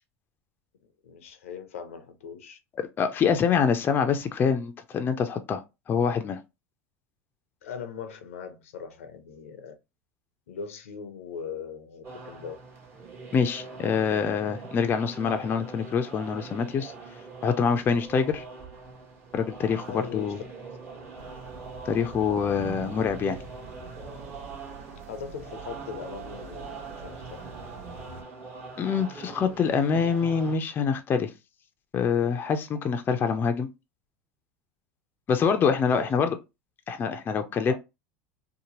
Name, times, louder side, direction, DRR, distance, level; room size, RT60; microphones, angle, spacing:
voice 1, 1.0-2.6 7.6-9.7 10.5-12.6 19.9-20.5 25.1-27.4 35.9-36.3 37.7-37.8, left 6 dB, 80° left, 0.6 m, -40 dB
voice 2, 3.0-5.6 5.9-6.4 13.3-16.9 17.4-18.4 19.3-20.4 21.9-23.4 28.8-31.3 31.9-33.7 35.3-36.4 36.9-37.7, left 6 dB, 30° left, 0.4 m, -25 dB
sound 1, 12.0-30.6, right 4 dB, 35° right, 1.2 m, -43 dB
sound 2, 21.2-28.2, right 4 dB, 85° right, 0.9 m, -44 dB
2.8 x 2.0 x 2.9 m
hypercardioid pair, 100°, 7 cm